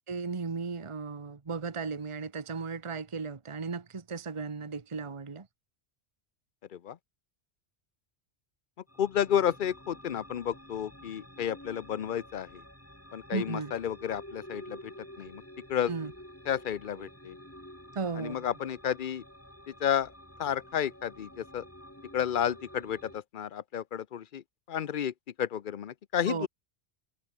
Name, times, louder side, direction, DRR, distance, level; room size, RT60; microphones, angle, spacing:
voice 1, 0.1-5.5 13.3-13.7 15.9-16.1 17.9-18.5 26.2-26.5, right 4 dB, 30° right, 1.1 m, -35 dB
sound 1, 8.9-23.2, equal, 10° left, 4.5 m, -50 dB
voice 2, 9.0-12.6 13.1-14.9 15.2-15.4 15.7-15.9 16.5-17.3 18.2-19.2 19.7-20.1 20.4-21.6 22.1-24.4 24.7-26.5, left 9 dB, 50° left, 0.8 m, -31 dB
omnidirectional pair, 1.1 m